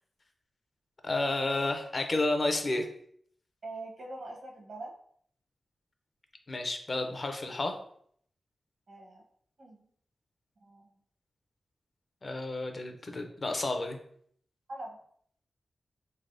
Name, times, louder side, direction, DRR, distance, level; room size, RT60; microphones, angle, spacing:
voice 1, 1.0-2.9 6.5-7.8 12.2-14.0, left 2 dB, 40° left, 5 dB, 0.5 m, -31 dB
voice 2, 3.6-4.9 8.9-9.2 9.6-9.8 10.6-10.9 14.7-15.0, right 2 dB, 65° right, -1 dB, 0.9 m, -43 dB
3.9 x 3.3 x 2.6 m, 0.64 s
wide cardioid pair, 135°, 0 cm